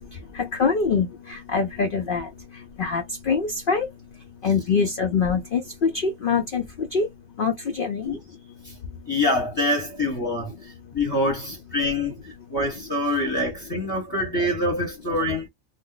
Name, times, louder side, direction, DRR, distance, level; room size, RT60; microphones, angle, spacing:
voice 1, 0.4-2.3 2.8-3.9 4.4-6.6 6.9-7.1 7.4-8.1, left 5 dB, 55° left, 0.6 m, -24 dB
voice 2, 9.1-15.5, left 1 dB, 20° left, 0.8 m, -25 dB
2.6 x 2.1 x 3.7 m
omnidirectional pair, 1.5 m